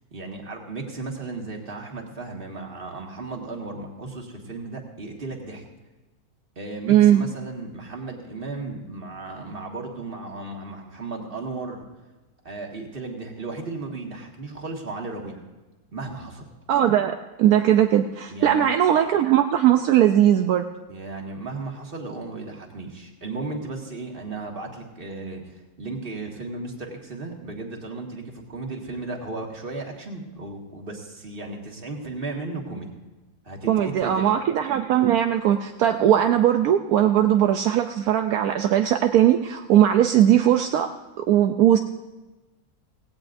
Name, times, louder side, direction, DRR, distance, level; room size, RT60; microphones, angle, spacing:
voice 1, 0.1-5.6 6.6-11.8 12.4-15.4 15.9-16.4 18.3-18.7 20.9-32.9 33.4-34.3, right 3 dB, 35° right, 1 dB, 1.9 m, -35 dB
voice 2, 6.9-7.2 16.7-20.7 33.7-40.9 41.3-41.8, right 11 dB, 75° right, 6 dB, 1.1 m, -19 dB
17.5 x 16.5 x 2.6 m, 1.2 s
omnidirectional pair, 1.6 m